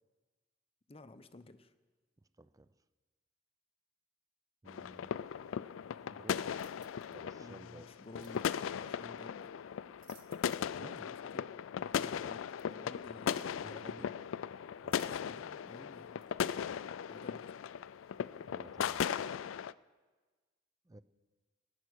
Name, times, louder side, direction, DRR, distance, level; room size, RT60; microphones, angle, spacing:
voice 1, 0.9-1.7 7.3-9.5 10.8-11.5 11.9-14.1 14.9-16.2 17.1-17.5, left 2 dB, 30° left, 11 dB, 0.7 m, -53 dB
voice 2, 2.4-2.7 4.6-5.2 6.1-6.5 7.1-7.9 10.7-11.1 13.6-14.1 14.8-15.2 18.3-19.0 20.8-21.0, right 2 dB, 20° right, 14 dB, 0.5 m, -54 dB
sound 1, 4.7-19.7, left 8 dB, 80° left, 0.3 m, -38 dB
sound 2, 6.5-7.2 8.2-8.5 9.8-10.8 11.1-11.2 12.6-12.7 13.3-13.6 14.9-15.5 16.2-16.3, right 8 dB, 80° right, 1.5 m, -64 dB
20.0 x 9.7 x 6.4 m, 1.4 s
head